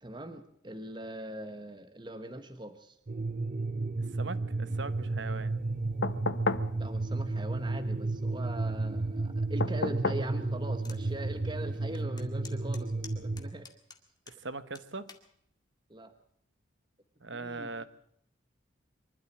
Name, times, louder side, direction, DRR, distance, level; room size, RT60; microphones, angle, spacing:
voice 1, 0.0-3.0 6.8-13.7 15.9-16.1 17.3-17.8, right 1 dB, 25° right, 7 dB, 1.2 m, -42 dB
sound 1, 3.1-13.5, right 2 dB, 40° right, 0.8 m, -32 dB
voice 2, 4.0-5.6 14.3-15.1 17.2-17.8, right 3 dB, 65° right, 13 dB, 1.2 m, -40 dB
sound 2, 6.0-6.7 9.6-10.3 11.9-12.0, left 3 dB, 70° left, 1.0 m, -31 dB
sound 3, 10.8-11.0 11.5-11.6 12.2-14.4 14.8-15.3 16.0-16.3, left 5 dB, 20° left, 2.1 m, -49 dB
24.5 x 12.5 x 8.6 m, 0.70 s
head